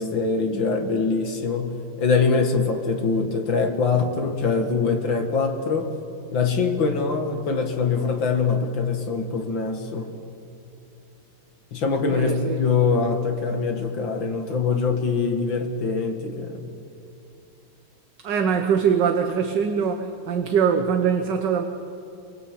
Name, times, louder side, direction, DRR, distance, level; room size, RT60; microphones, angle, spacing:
voice 1, 0.0-6.0 6.3-10.1 11.7-16.7, left 4 dB, 65° left, 4 dB, 2.8 m, -23 dB
voice 2, 12.1-12.6 18.2-21.6, right 7 dB, 60° right, 6 dB, 1.7 m, -22 dB
28.0 x 23.0 x 8.6 m, 2.7 s
omnidirectional pair, 2.3 m